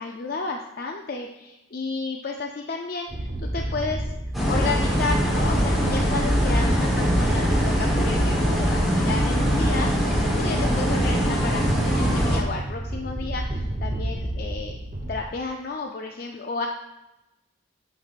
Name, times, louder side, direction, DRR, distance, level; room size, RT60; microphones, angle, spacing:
voice 1, 0.0-4.0 4.5-14.7 15.1-16.7, left 3 dB, 50° left, 2 dB, 0.4 m, -32 dB
sound 1, 3.1-15.1, right 1 dB, 40° right, 0.8 m, -31 dB
sound 2, 4.3-12.4, equal, ahead, 1.1 m, -22 dB
8.3 x 5.9 x 2.4 m, 0.98 s
head